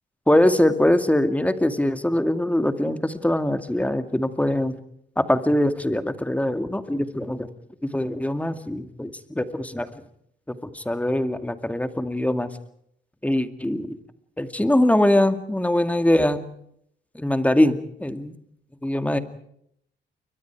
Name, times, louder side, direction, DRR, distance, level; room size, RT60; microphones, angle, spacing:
voice 1, 0.3-4.8 5.2-7.5 7.8-9.1 9.4-9.9 10.5-12.5 13.2-14.0 14.4-16.5 17.1-18.3 18.8-19.2, left 1 dB, 5° left, 9 dB, 2.2 m, -22 dB
29.5 x 22.5 x 4.8 m, 0.69 s
cardioid pair, 75°, 19 cm